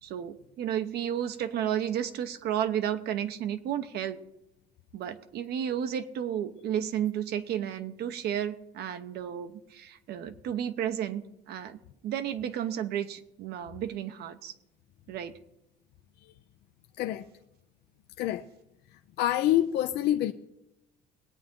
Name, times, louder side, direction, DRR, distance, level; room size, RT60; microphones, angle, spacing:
voice 1, 0.0-4.2 4.9-11.8 12.0-14.5 15.1-15.4, right 10 dB, 70° right, 0.9 m, -32 dB
voice 2, 19.2-20.3, left 13 dB, 80° left, 0.6 m, -26 dB
21.0 x 8.8 x 3.7 m
cardioid pair, 110°, 17 cm